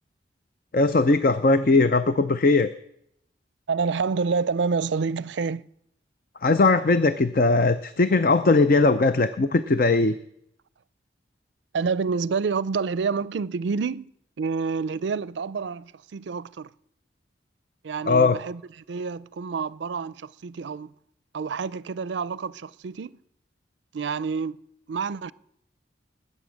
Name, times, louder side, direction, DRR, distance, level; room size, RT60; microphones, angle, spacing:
voice 1, 0.7-2.7 6.4-10.1 18.1-18.4, left 3 dB, 50° left, 0.5 m, -19 dB
voice 2, 3.7-5.7 11.7-14.1 14.4-16.7 17.8-20.9 21.3-23.2 23.9-24.6 24.9-25.3, right 5 dB, 75° right, 0.4 m, -28 dB
20.0 x 8.5 x 6.3 m
head